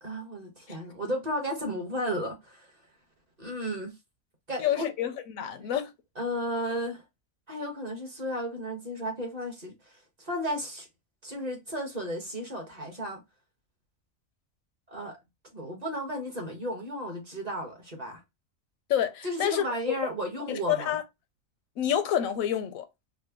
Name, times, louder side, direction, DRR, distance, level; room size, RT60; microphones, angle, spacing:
voice 1, 0.0-2.7 3.4-4.0 4.5-4.9 6.2-7.0 7.5-9.7 10.2-10.9 11.2-13.2 14.9-15.2 15.5-18.2 19.2-21.0, equal, 35° right, 1.2 m, -34 dB
voice 2, 4.6-5.9 18.9-19.7 20.5-21.0 21.8-22.8, left 10 dB, 85° left, 1.0 m, -28 dB
3.7 x 2.1 x 3.5 m
omnidirectional pair, 1.4 m